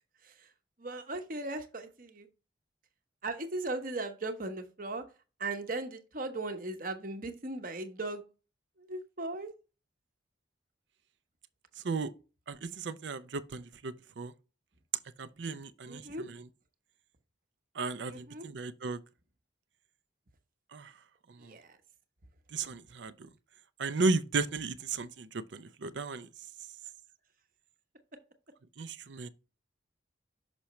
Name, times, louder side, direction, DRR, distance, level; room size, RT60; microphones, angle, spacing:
voice 1, 0.8-2.3 3.2-5.0 5.4-8.2 8.8-9.5 15.9-16.2 18.1-18.5 21.4-21.8, right 2 dB, 45° right, 0.9 m, -38 dB
voice 2, 12.5-14.3 15.2-16.0 17.8-19.0 20.7-20.9 21.4-21.5 22.5-23.3 23.8-26.3 28.8-29.3, right 3 dB, 65° right, 0.5 m, -34 dB
6.1 x 5.6 x 3.0 m
head